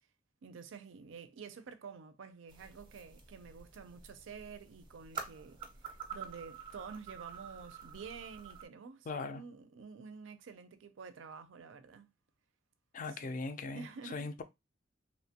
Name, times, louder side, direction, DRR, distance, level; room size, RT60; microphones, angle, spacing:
voice 1, 0.4-12.1 13.1-13.4 13.7-14.3, right 5 dB, 80° right, 0.4 m, -49 dB
sound 1, 2.5-8.7, right 6 dB, 25° right, 0.6 m, -48 dB
voice 2, 9.1-9.4 12.9-13.9 14.1-14.4, left 3 dB, 45° left, 0.4 m, -39 dB
2.9 x 2.1 x 2.8 m
head